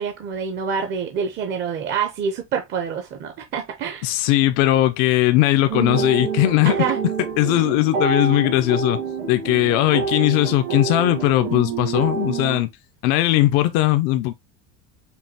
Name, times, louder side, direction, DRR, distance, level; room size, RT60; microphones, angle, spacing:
voice 1, 0.0-4.1 6.7-7.0, right 6 dB, 35° right, 0.6 m, -26 dB
voice 2, 4.0-6.8 7.4-9.0 9.3-12.7 13.0-14.3, left 15 dB, 60° left, 0.5 m, -19 dB
sound 1, 5.7-12.6, right 6 dB, 65° right, 1.7 m, -27 dB
5.3 x 2.3 x 2.7 m
cardioid pair, 160°, 34 cm